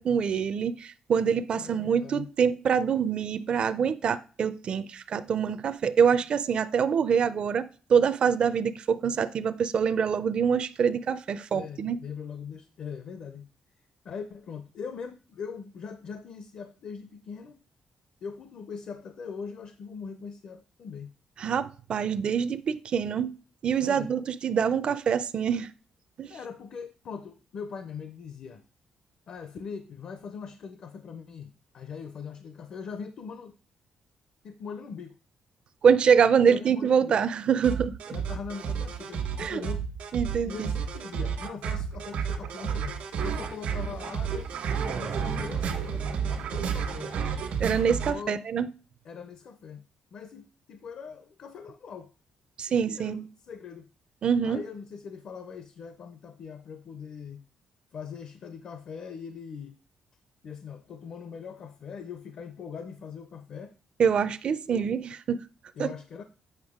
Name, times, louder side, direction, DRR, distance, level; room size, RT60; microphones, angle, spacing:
voice 1, 0.0-12.0 21.4-23.3 23.6-25.7 26.2-26.3 35.8-37.9 39.4-39.6 40.1-40.7 47.6-48.7 52.6-53.2 54.2-54.6 64.0-65.4 65.8-65.9, right 7 dB, 45° right, 0.4 m, -25 dB
voice 2, 1.6-2.3 11.5-13.5 14.0-17.6 18.2-21.1 23.8-24.1 26.3-28.6 29.3-33.6 34.4-35.2 36.4-37.2 38.1-39.8 40.4-44.5 44.9-47.1 47.9-48.4 49.0-49.8 50.1-52.1 52.7-53.9 54.4-57.4 57.9-59.8 60.4-63.7 64.7-64.9 65.7-66.2, left 6 dB, 55° left, 0.6 m, -41 dB
sound 1, 37.6-48.1, right 6 dB, 80° right, 1.4 m, -31 dB
8.0 x 5.6 x 3.6 m
cardioid pair, 160°, 2 cm